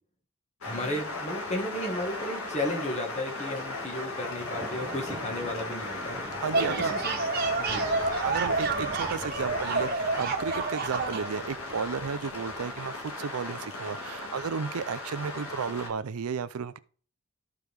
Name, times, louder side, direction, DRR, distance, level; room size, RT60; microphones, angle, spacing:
sound 1, 0.6-15.9, left 2 dB, 75° left, 1.7 m, -37 dB
voice 1, 0.6-6.2 6.5-7.2 7.6-7.9, left 1 dB, 30° left, 1.5 m, -34 dB
Thunder, 3.5-13.4, right 1 dB, 20° right, 0.7 m, -46 dB
sound 2, 6.3-11.3, right 3 dB, 45° right, 1.3 m, -29 dB
voice 2, 6.4-6.9 7.8-7.9 8.2-16.8, right 6 dB, 75° right, 0.5 m, -33 dB
13.5 x 4.7 x 3.4 m
head